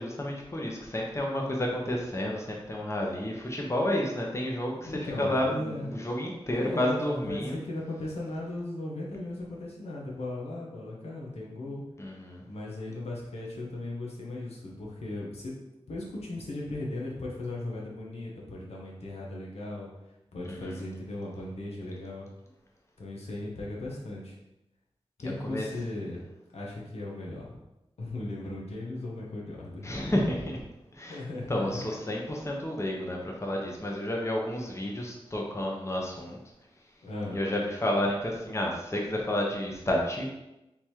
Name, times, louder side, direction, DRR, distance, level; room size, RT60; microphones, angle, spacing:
voice 1, 0.0-7.6 12.0-12.4 20.4-20.8 25.2-25.7 29.8-30.6 30.9-31.2 31.5-36.4 37.3-40.2, left 1 dB, 25° left, -1 dB, 0.9 m, -31 dB
voice 2, 4.8-5.9 6.6-11.8 12.5-15.5 15.9-19.9 20.3-22.3 23.0-24.4 25.2-26.2 26.5-27.6 28.0-29.9 31.1-32.1 37.0-37.4, left 2 dB, 90° left, -3 dB, 1.0 m, -37 dB
3.6 x 3.0 x 4.5 m, 0.93 s
wide cardioid pair, 70°, 11 cm